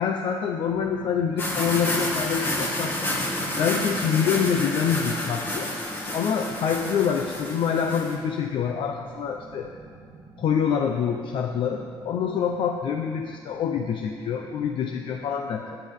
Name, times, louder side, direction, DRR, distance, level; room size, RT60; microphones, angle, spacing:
voice 1, 0.0-3.1 3.6-5.7 6.1-9.7 10.4-15.8, left 7 dB, 60° left, 4 dB, 0.8 m, -26 dB
sound 1, 0.7-15.3, right 2 dB, 60° right, 3.9 m, -48 dB
sound 2, 1.4-8.1, left 1 dB, 25° left, 2.1 m, -29 dB
23.5 x 9.8 x 3.7 m, 2.1 s
cardioid pair, 150°, 9 cm